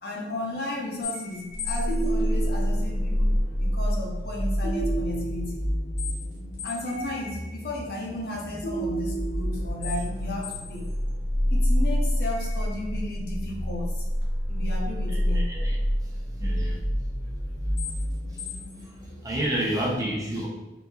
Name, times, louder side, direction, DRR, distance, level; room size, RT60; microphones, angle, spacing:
voice 1, 0.0-3.3 3.6-5.6 6.6-10.9 11.5-14.0 14.5-15.4, left 1 dB, 55° left, -2 dB, 0.7 m, -34 dB
sound 1, 1.0-19.4, equal, 75° left, 1.1 m, -28 dB
voice 2, 15.1-15.8 16.4-16.8 19.2-20.5, right 1 dB, 20° right, -4 dB, 0.5 m, -29 dB
3.9 x 2.7 x 2.3 m, 1.0 s
head